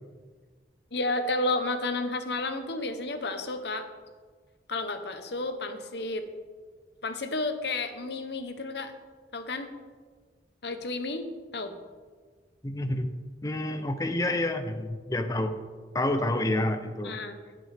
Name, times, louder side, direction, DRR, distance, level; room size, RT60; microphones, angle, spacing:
voice 1, 0.9-3.9 4.7-6.3 7.0-8.9 9.3-9.7 10.6-11.3 11.5-11.8 17.0-17.4, left 2 dB, 65° left, 8 dB, 0.9 m, -31 dB
voice 2, 12.6-13.1 13.4-15.5 15.9-17.2, left 1 dB, 20° left, 8 dB, 0.6 m, -28 dB
10.5 x 9.4 x 3.4 m, 1.5 s
head